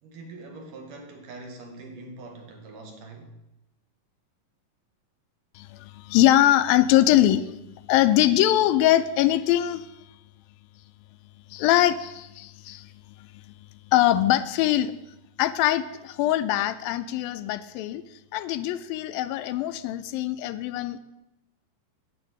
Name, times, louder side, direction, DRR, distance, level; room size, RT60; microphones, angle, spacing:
voice 1, 0.0-3.4, right 2 dB, 70° right, 2 dB, 3.5 m, -43 dB
voice 2, 5.6-7.5 7.9-9.9 11.5-12.9 13.2-13.3 13.9-14.9 15.4-18.0 18.3-21.0, left 13 dB, 85° left, 11 dB, 2.5 m, -22 dB
10.5 x 8.8 x 8.2 m, 0.93 s
omnidirectional pair, 4.0 m